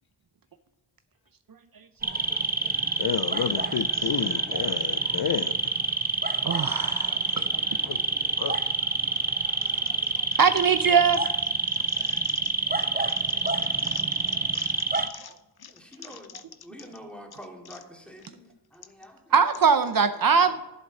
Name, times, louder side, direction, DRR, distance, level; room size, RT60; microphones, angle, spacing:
sound 1, 2.0-15.1, right 3 dB, 20° right, 0.8 m, -27 dB
voice 1, 3.0-5.6 7.8-8.0 8.4-8.6 11.7-12.4 13.3-14.0 14.5-15.3 15.6-15.7 16.1-16.4 16.8-16.9, left 9 dB, 60° left, 13 dB, 0.5 m, -33 dB
voice 2, 6.4-7.5 10.4-11.2 19.3-20.6, right 6 dB, 55° right, 11 dB, 0.6 m, -21 dB
voice 3, 7.6-8.6 11.9-12.3 15.7-19.2 20.4-20.6, equal, 5° left, 1 dB, 2.4 m, -48 dB
10.5 x 8.1 x 4.0 m, 1.0 s
cardioid pair, 55°, 43 cm